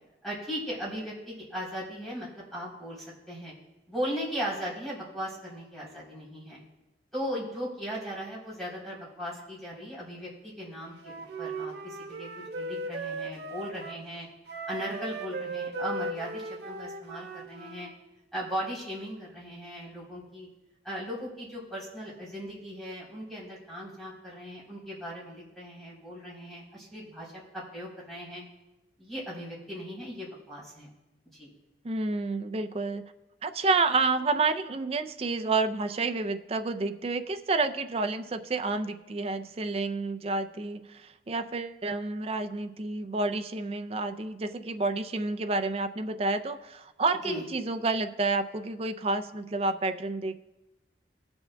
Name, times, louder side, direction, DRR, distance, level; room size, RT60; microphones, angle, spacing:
voice 1, 0.2-3.5 3.9-6.6 7.1-12.3 12.6-14.3 14.7-17.9 18.3-20.5 20.8-28.4 29.0-30.9 31.4-31.5 47.2-47.4, equal, ahead, -8 dB, 3.5 m, -38 dB
Wind instrument woodwind instrument, 11.0-14.0 14.5-17.9, right 2 dB, 65° right, 0.8 m, -37 dB
voice 2, 31.8-33.0 33.4-50.4, right 3 dB, 35° right, 9 dB, 0.4 m, -29 dB
21.0 x 7.0 x 2.2 m, 0.98 s
head